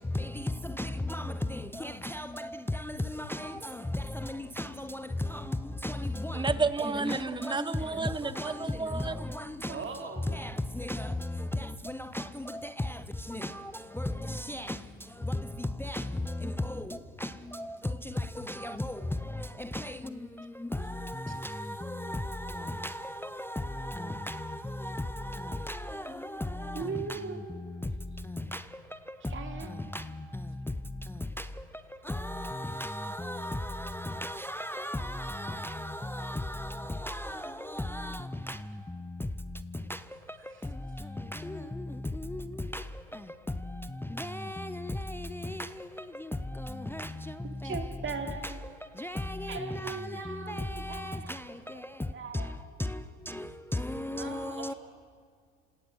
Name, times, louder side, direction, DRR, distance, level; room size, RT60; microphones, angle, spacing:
voice 1, 0.8-2.6 2.9-3.5 4.3-4.7 5.8-6.4 6.8-7.7 8.4-8.5 9.3-9.7 10.3-10.5 10.8-11.1 12.1-12.2 12.5-12.6 13.3-13.5 14.0-14.8 15.3-15.4 15.8-16.0 16.4-16.5 17.2-17.3 17.6-17.7 18.6-19.0 19.7-19.9 21.0-23.1 23.4-24.6 24.8-25.0 25.4-26.0 26.4-26.8 28.5-28.6 32.1-38.2 38.5-38.6 41.4-41.6 42.3-42.4 42.7-42.8 44.2-45.7 46.9-47.1 47.7-47.8 49.0-50.0 50.3-51.2 53.4-53.5 53.7-54.7, left 1 dB, 5° left, 0.6 m, -36 dB
voice 2, 6.3-9.2, right 4 dB, 10° right, 1.0 m, -31 dB
voice 3, 9.7-10.3 26.7-27.4 29.3-29.7 40.4-40.6 41.0-41.1 47.6-48.6 49.0-49.1 49.5-52.5 54.1-54.8, right 5 dB, 30° right, 3.1 m, -40 dB
27.5 x 17.5 x 6.3 m
supercardioid pair, 85°, 37 cm